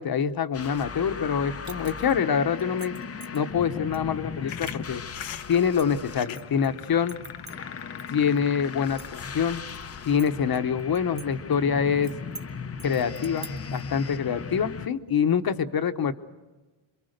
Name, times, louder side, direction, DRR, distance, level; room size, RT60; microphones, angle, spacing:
voice 1, 0.0-3.0 3.3-5.0 5.5-7.2 8.1-9.6 10.1-12.2 12.8-16.1, left 7 dB, 50° left, 9 dB, 1.1 m, -25 dB
sound 1, 0.5-14.9, left 5 dB, 30° left, 0.8 m, -38 dB
sound 2, 1.6-2.2 2.6-3.4 3.9-4.0 4.7-4.9 5.2-6.7 7.1-8.1 8.4-8.5 8.8-9.8 10.2-11.3 11.5-11.6 12.0-12.5 12.8-13.8, right 4 dB, 35° right, 1.4 m, -45 dB
Mouth Noises, 4.5-10.6, left 10 dB, 75° left, 1.0 m, -42 dB
27.5 x 23.0 x 6.7 m, 1.2 s
cardioid pair, 100°, 47 cm